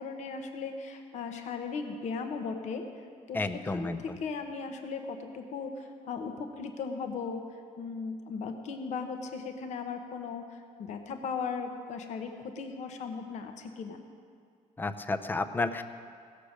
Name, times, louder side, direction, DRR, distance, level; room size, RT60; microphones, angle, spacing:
voice 1, 0.0-2.8 3.3-7.4 7.8-14.0, left 5 dB, 60° left, 6 dB, 1.0 m, -37 dB
voice 2, 3.3-4.2 14.8-15.8, left 3 dB, 15° left, 10 dB, 0.5 m, -31 dB
16.5 x 6.7 x 6.5 m, 2.2 s
cardioid pair, 140°, 13 cm